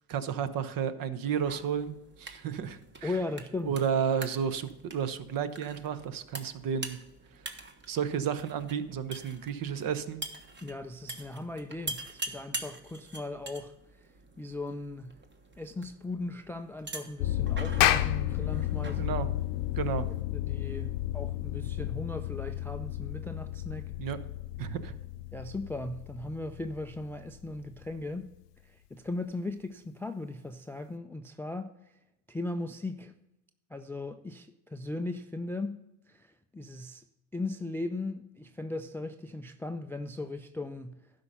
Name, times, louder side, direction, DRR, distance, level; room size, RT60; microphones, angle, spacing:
voice 1, 0.1-3.1 3.6-7.0 7.9-10.2 19.0-19.3 19.8-20.1 24.0-24.2 24.6-24.9, right 7 dB, 45° right, 1.0 m, -32 dB
sound 1, 1.4-20.2, right 2 dB, 25° right, 1.3 m, -45 dB
voice 2, 3.0-3.8 10.6-14.1 14.4-15.2 15.6-19.1 19.8-19.9 20.3-23.9 24.6-24.7 25.3-28.3 28.6-31.7 32.3-33.1 33.7-35.8 36.1-37.0 37.3-41.0, left 2 dB, 5° left, 0.3 m, -38 dB
sound 2, 17.2-28.0, left 14 dB, 85° left, 0.6 m, -34 dB
Clapping, 17.8-22.5, left 13 dB, 45° left, 0.8 m, -31 dB
12.0 x 5.2 x 5.5 m
hypercardioid pair, 75°, 46 cm